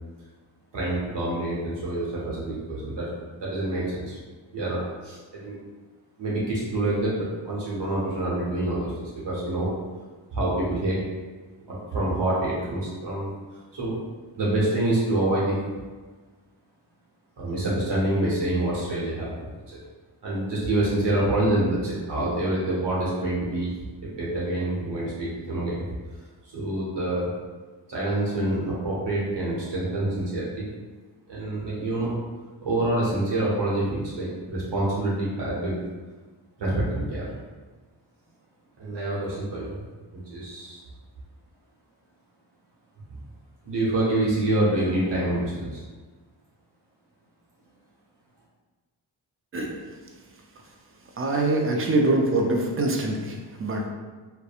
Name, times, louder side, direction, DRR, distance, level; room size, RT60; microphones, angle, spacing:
voice 1, 0.7-3.1 3.4-4.2 4.5-5.6 6.2-9.7 10.3-11.0 11.7-13.3 13.7-14.0 14.4-15.5 17.4-19.8 20.2-23.7 24.2-25.8 26.4-27.3 27.9-30.7 31.3-32.1 32.6-35.8 36.6-37.3 38.8-39.7 40.3-40.8 43.1-43.2 43.6-45.8, right 1 dB, 60° right, -7 dB, 0.9 m, -26 dB
voice 2, 51.2-53.9, right 2 dB, 30° right, 1 dB, 0.4 m, -24 dB
2.6 x 2.1 x 2.4 m, 1.4 s
supercardioid pair, 45°, 49 cm